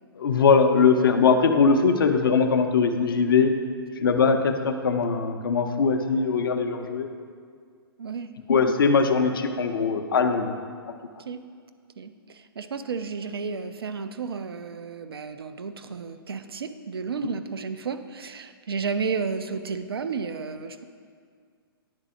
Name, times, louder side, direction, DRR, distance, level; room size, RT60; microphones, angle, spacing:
voice 1, 0.2-3.5 4.0-7.1 8.5-10.5, left 5 dB, 60° left, 6 dB, 0.6 m, -21 dB
voice 2, 8.0-8.3 11.3-11.4 12.0-20.8, right 5 dB, 70° right, 10 dB, 0.5 m, -32 dB
9.8 x 4.0 x 4.9 m, 2.1 s
figure-of-eight pair, 120°, 13 cm